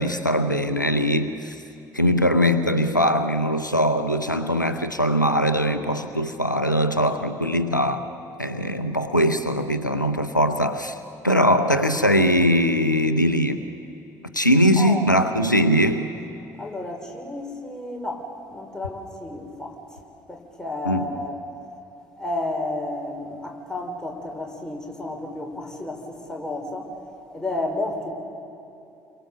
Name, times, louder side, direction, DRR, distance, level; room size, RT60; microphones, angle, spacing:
voice 1, 0.0-1.6 1.9-8.1 8.4-11.0 11.2-13.6 14.3-16.1 20.8-21.1, equal, 90° left, 8 dB, 0.7 m, -21 dB
voice 2, 14.8-15.1 16.6-20.0 20.3-21.4 22.2-26.9 27.3-28.1, left 2 dB, 5° left, 1 dB, 5.1 m, -31 dB
29.0 x 23.0 x 7.0 m, 2.8 s
figure-of-eight pair, 50°, 10 cm